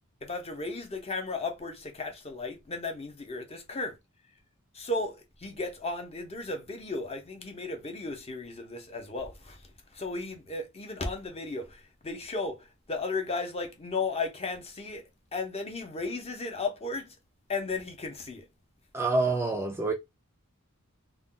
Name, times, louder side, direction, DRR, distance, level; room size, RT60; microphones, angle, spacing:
voice 1, 0.2-4.0 4.7-9.6 9.9-17.1 17.5-18.5, left 3 dB, 30° left, 0.7 m, -35 dB
voice 2, 18.9-19.9, right 3 dB, 10° right, 0.4 m, -27 dB
2.4 x 2.2 x 3.7 m
head